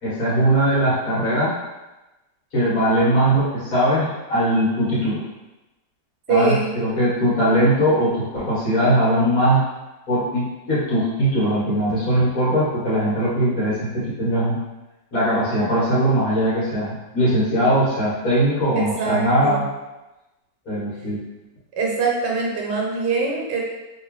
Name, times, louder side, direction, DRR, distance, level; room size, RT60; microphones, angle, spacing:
voice 1, 0.0-1.6 2.5-5.2 6.3-9.7 10.1-14.6 15.1-19.7 20.7-21.2, right 1 dB, 60° left, -9 dB, 1.8 m, -20 dB
voice 2, 6.3-6.7 18.7-19.6 21.8-23.6, right 4 dB, 85° right, -2 dB, 1.4 m, -23 dB
3.4 x 2.9 x 3.1 m, 1.0 s
omnidirectional pair, 1.8 m